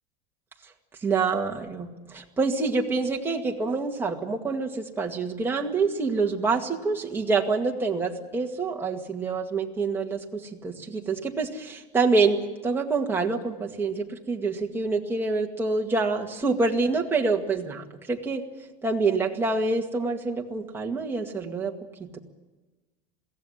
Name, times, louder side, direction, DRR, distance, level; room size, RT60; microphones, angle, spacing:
voice 1, 1.0-18.4 18.8-21.7 22.0-22.2, right 4 dB, 10° right, 0 dB, 2.0 m, -26 dB
22.0 x 16.0 x 9.9 m, 1.2 s
cardioid pair, 160°, 20 cm